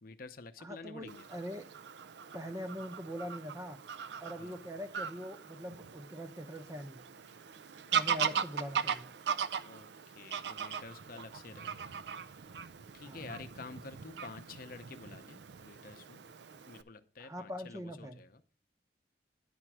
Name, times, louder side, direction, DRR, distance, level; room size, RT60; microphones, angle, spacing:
voice 1, 0.0-1.3 4.4-4.6 8.3-8.4 9.6-12.2 12.9-16.2 16.7-18.4, left 3 dB, 55° left, 9 dB, 0.7 m, -50 dB
voice 2, 0.6-1.6 2.3-3.8 4.2-7.1 7.9-9.1 13.1-13.3 17.2-18.2, equal, 20° right, 8 dB, 0.7 m, -42 dB
Fowl / Bird vocalization bird call bird song, 1.1-16.8, right 7 dB, 75° right, 0.5 m, -39 dB
10.0 x 4.5 x 6.0 m, 0.39 s
head